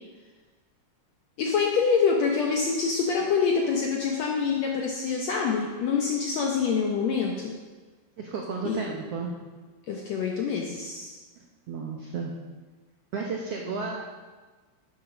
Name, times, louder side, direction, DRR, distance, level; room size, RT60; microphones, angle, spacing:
voice 1, 1.4-7.5 8.6-9.0 9.9-11.2, left 5 dB, 70° left, 0 dB, 1.6 m, -26 dB
voice 2, 8.2-9.4 11.7-12.3 13.1-14.0, right 4 dB, 80° right, 0 dB, 1.3 m, -33 dB
9.6 x 8.0 x 6.1 m, 1.3 s
omnidirectional pair, 4.2 m